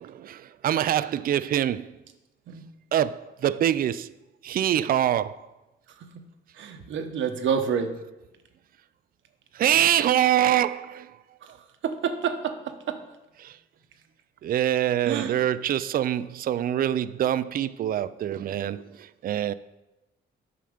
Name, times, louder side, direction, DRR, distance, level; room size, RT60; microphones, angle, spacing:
voice 1, 0.0-1.9 2.9-4.1 4.4-5.4 9.6-11.1 13.4-13.5 14.4-18.8 19.2-19.5, right 11 dB, 45° right, 0.4 m, -24 dB
voice 2, 6.6-7.9 11.8-13.0 15.1-15.3, right 7 dB, 70° right, 1.0 m, -28 dB
9.2 x 5.7 x 5.0 m
cardioid pair, 90°, 20 cm